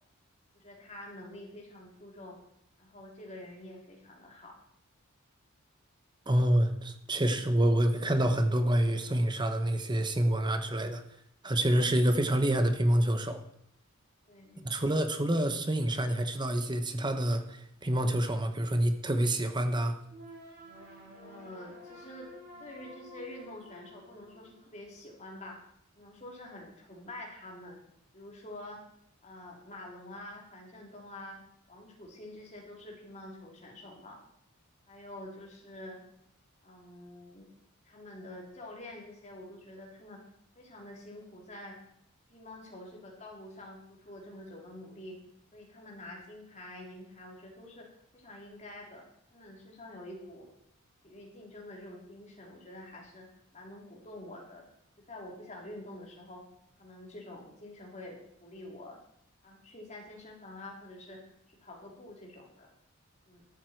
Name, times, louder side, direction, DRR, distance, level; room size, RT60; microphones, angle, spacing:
voice 1, 0.5-2.4 2.8-4.5 14.3-14.9 21.2-22.3 22.6-25.6 26.0-27.8 28.1-28.8 29.2-31.4 31.7-34.2 34.9-36.0 36.6-37.5 37.9-40.2 40.6-41.8 42.3-45.2 45.5-47.9 48.1-49.0 49.3-50.5 51.0-53.3 53.5-54.7 55.1-56.4 56.8-59.0 59.4-61.2 61.5-62.7 63.3-63.4, left 1 dB, 35° left, -2 dB, 3.9 m, -47 dB
voice 2, 6.3-11.0 11.4-13.4 14.6-20.0, right 1 dB, 20° right, 8 dB, 1.0 m, -27 dB
sound 1, 20.1-25.1, equal, 45° right, 6.8 m, -51 dB
14.0 x 12.5 x 4.7 m, 0.74 s
head